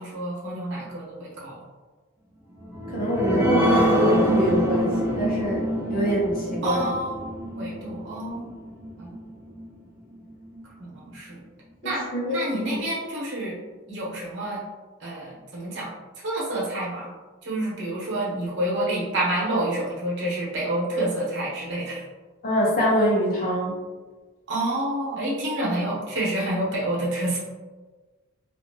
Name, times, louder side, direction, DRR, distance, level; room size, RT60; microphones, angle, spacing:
voice 1, 0.0-1.6 6.6-8.5 9.0-9.2 10.8-11.4 11.8-13.6 13.9-14.6 15.0-15.9 16.2-17.1 17.4-22.0 24.5-27.4, right 1 dB, 55° right, -5 dB, 0.9 m, -28 dB
sound 1, 2.6-9.7 10.1-10.2 10.6-10.7, right 1 dB, 10° right, 0.3 m, -26 dB
voice 2, 2.9-5.6 5.9-6.8 11.8-12.4 12.7-12.8 22.4-23.8, equal, 40° left, -5 dB, 0.8 m, -24 dB
2.7 x 2.5 x 2.8 m, 1.3 s
head